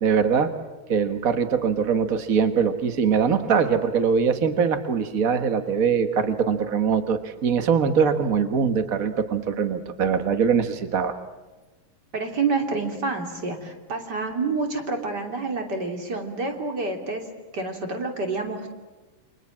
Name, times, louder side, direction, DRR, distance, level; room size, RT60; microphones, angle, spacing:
voice 1, 0.0-0.5 0.9-11.1, right 6 dB, 75° right, 9 dB, 0.7 m, -22 dB
voice 2, 12.1-17.2 17.5-18.8, right 3 dB, 30° right, 4 dB, 3.4 m, -28 dB
29.0 x 25.5 x 7.4 m, 1.2 s
omnidirectional pair, 3.9 m